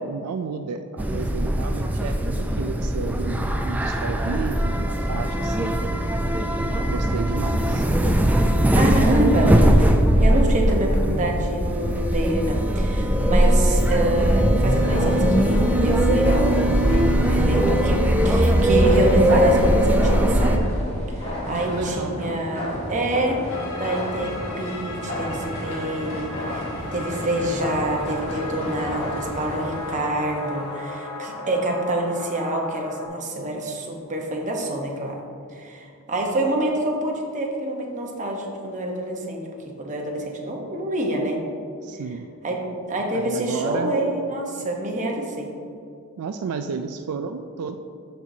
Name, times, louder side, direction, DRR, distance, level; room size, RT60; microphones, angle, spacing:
voice 1, 0.0-5.8 6.9-7.9 21.4-22.2 41.8-42.3 43.1-44.0 46.2-47.8, right 5 dB, 75° right, 7 dB, 0.3 m, -32 dB
sound 1, 1.0-20.6, right 1 dB, 5° right, 0.4 m, -20 dB
voice 2, 8.7-17.0 17.3-20.6 21.1-26.6 26.9-35.2 35.5-39.4 39.8-41.4 42.4-45.5, right 1 dB, 35° right, 0 dB, 1.0 m, -26 dB
sound 2, 14.7-30.0, left 1 dB, 30° left, 1.7 m, -32 dB
sound 3, 23.5-33.1, left 2 dB, 65° left, 0.9 m, -36 dB
13.0 x 4.6 x 2.7 m, 2.6 s
head